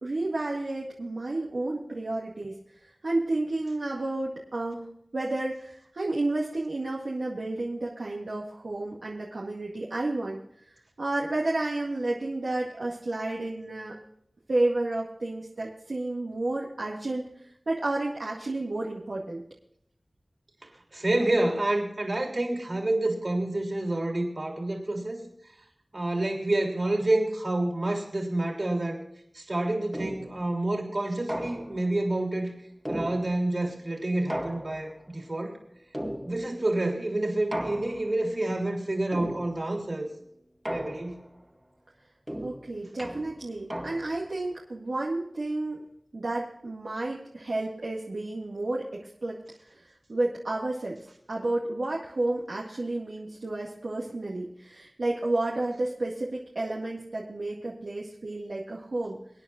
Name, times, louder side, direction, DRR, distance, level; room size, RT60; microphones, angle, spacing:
voice 1, 0.0-4.9 5.1-14.0 14.5-19.4 42.4-45.8 46.1-51.0 51.3-59.2, right 2 dB, 90° right, -4 dB, 2.0 m, -31 dB
voice 2, 20.9-25.2 25.9-29.0 29.3-32.5 32.9-35.6 36.2-40.1 40.7-41.2, right 1 dB, 55° right, 1 dB, 3.4 m, -28 dB
sound 1, 29.9-30.5 31.3-32.0 32.9-33.6 34.3-35.1 35.9-36.7 37.5-38.2 39.1-39.8 40.7-41.4 42.3-44.3, equal, 15° right, 2.0 m, -36 dB
25.0 x 9.7 x 2.5 m, 0.73 s
wide cardioid pair, 45°, 0 cm